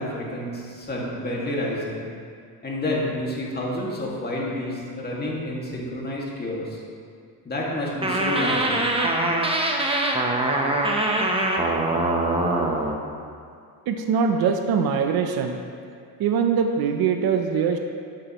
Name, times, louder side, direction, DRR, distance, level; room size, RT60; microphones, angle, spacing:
voice 1, 0.0-2.1 2.6-6.8 7.4-8.9, left 1 dB, 25° left, -4 dB, 2.1 m, -29 dB
sound 1, 8.0-13.0, right 2 dB, 15° right, 0.9 m, -23 dB
voice 2, 13.9-15.6 16.2-17.8, right 6 dB, 60° right, 5 dB, 0.8 m, -22 dB
12.0 x 7.7 x 3.1 m, 2.2 s
cardioid pair, 115°, 40 cm